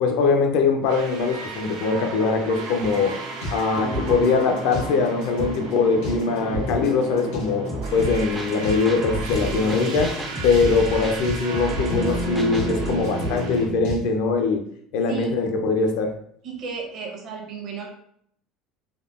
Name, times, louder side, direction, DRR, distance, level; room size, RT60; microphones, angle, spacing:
voice 1, 0.0-3.2 3.5-10.1 10.4-14.6 14.9-16.1, left 4 dB, 65° left, 4 dB, 0.4 m, -22 dB
sound 1, 0.8-13.7, right 2 dB, 85° right, 0.6 m, -34 dB
sound 2, 2.8-14.0, equal, 85° left, 1.4 m, -32 dB
sound 3, 7.7-13.0, right 2 dB, 5° right, 0.3 m, -33 dB
voice 2, 16.4-17.9, right 5 dB, 40° right, 1 dB, 0.6 m, -34 dB
3.5 x 2.0 x 2.4 m, 0.66 s
cardioid pair, 175°, 0 cm